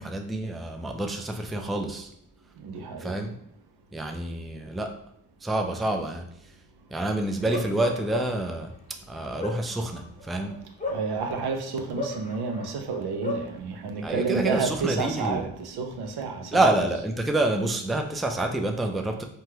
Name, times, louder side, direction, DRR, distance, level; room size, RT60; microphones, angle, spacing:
voice 1, 0.0-2.1 3.0-3.4 3.9-4.9 5.4-6.3 6.9-8.7 9.1-10.6 14.0-15.5 16.5-19.2, right 2 dB, ahead, 0.3 m, -27 dB
voice 2, 2.6-3.3 10.9-16.7, right 4 dB, 75° right, 0.5 m, -30 dB
Bark, 7.4-8.5 9.1-11.5 12.0-13.5, left 3 dB, 20° left, 0.7 m, -34 dB
3.2 x 2.2 x 2.9 m
supercardioid pair, 45°, 39 cm